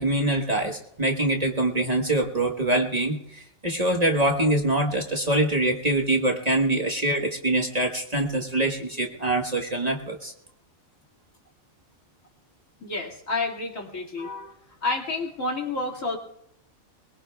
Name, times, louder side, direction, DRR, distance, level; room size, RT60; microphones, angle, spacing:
voice 1, 0.0-10.3, right 1 dB, 30° right, 2 dB, 1.4 m, -24 dB
voice 2, 12.8-14.5 14.8-16.2, left 3 dB, 70° left, 1 dB, 2.7 m, -29 dB
22.5 x 21.5 x 2.3 m, 0.76 s
omnidirectional pair, 1.4 m